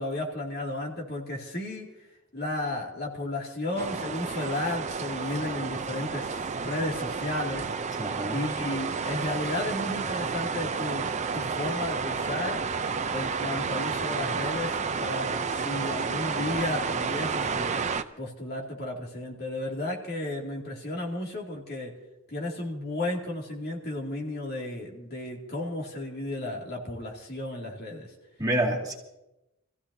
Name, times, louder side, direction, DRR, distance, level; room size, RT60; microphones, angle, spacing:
voice 1, 0.0-1.9 2.3-7.7 8.3-12.6 13.1-17.7 18.2-21.9 22.3-28.1, left 1 dB, 50° left, -1 dB, 2.6 m, -33 dB
sound 1, 3.8-18.0, right 5 dB, 35° right, 0.6 m, -31 dB
voice 2, 8.0-8.4 28.4-28.9, right 1 dB, 20° right, -3 dB, 2.3 m, -27 dB
27.0 x 15.5 x 2.8 m, 0.92 s
head